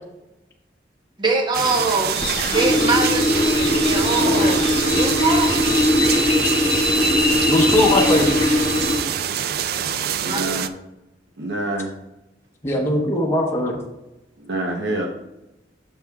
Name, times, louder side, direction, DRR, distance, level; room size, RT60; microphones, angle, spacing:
voice 1, 1.2-5.8 6.5-6.8 10.2-10.6, right 3 dB, 25° right, 1.0 m, -24 dB
sound 1, 1.5-10.7, right 9 dB, 60° right, 0.3 m, -25 dB
sound 2, 2.1-9.0, left 2 dB, 30° left, 1.9 m, -20 dB
voice 2, 4.2-4.5 7.5-8.4 12.6-13.8, left 1 dB, 15° left, 1.0 m, -20 dB
voice 3, 10.2-10.7 11.4-11.9 14.4-15.1, right 2 dB, 75° right, 0.9 m, -26 dB
8.8 x 6.4 x 2.4 m
head